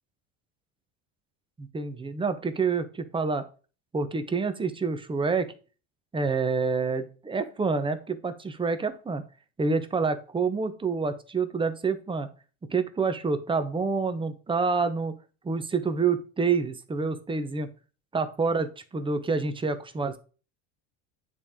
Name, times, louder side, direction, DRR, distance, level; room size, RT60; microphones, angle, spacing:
voice 1, 1.6-3.4 3.9-5.5 6.1-9.2 9.6-12.3 12.7-15.2 15.4-17.7 18.1-20.2, right 4 dB, 15° right, 10 dB, 0.8 m, -27 dB
9.7 x 3.4 x 3.6 m, 0.36 s
supercardioid pair, 115°, 37 cm